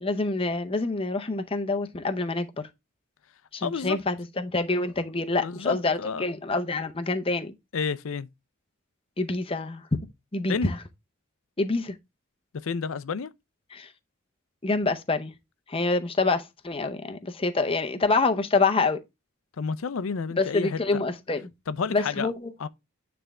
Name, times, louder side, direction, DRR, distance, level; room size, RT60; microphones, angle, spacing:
voice 1, 0.0-2.5 3.5-7.5 9.2-9.8 10.3-10.8 11.6-11.9 13.7-13.9 14.6-15.3 15.7-19.0 20.4-21.5 21.9-22.7, left 3 dB, 25° left, 0.6 m, -26 dB
voice 2, 3.6-4.0 5.4-6.3 7.7-8.3 10.5-10.7 12.6-13.3 19.6-21.0 21.7-22.3 22.6-22.7, left 5 dB, 70° left, 0.5 m, -30 dB
9.1 x 3.4 x 3.6 m
head